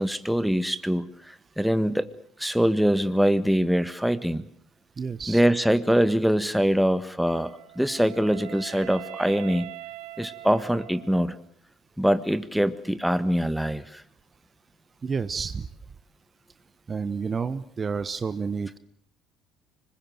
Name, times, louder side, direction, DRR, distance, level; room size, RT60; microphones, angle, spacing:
voice 1, 0.0-2.1 2.4-4.5 5.3-9.7 10.2-11.4 12.0-14.0, equal, ahead, 12 dB, 1.6 m, -23 dB
voice 2, 5.0-5.4 15.0-15.7 16.9-18.8, right 5 dB, 35° right, 13 dB, 1.1 m, -30 dB
Wind instrument woodwind instrument, 7.2-11.4, right 16 dB, 80° right, 1.3 m, -42 dB
25.5 x 21.0 x 7.8 m, 0.63 s
hypercardioid pair, 70°, 0 cm